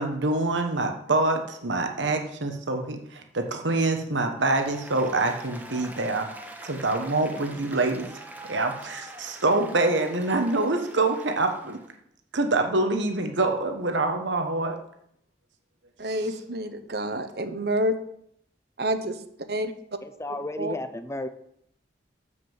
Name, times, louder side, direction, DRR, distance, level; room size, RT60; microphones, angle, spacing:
voice 1, 0.0-6.3 6.6-8.1 8.5-11.8 12.3-14.8 16.1-16.4, right 2 dB, 85° right, 5 dB, 1.2 m, -25 dB
Applause, 4.4-11.9, right 1 dB, 10° right, 1.1 m, -44 dB
voice 2, 16.0-17.9 18.8-19.1 19.5-19.7 20.6-20.8, equal, 60° right, 9 dB, 0.9 m, -28 dB
voice 3, 20.0-21.3, left 1 dB, 15° left, 10 dB, 0.6 m, -33 dB
7.4 x 6.5 x 7.2 m, 0.72 s
head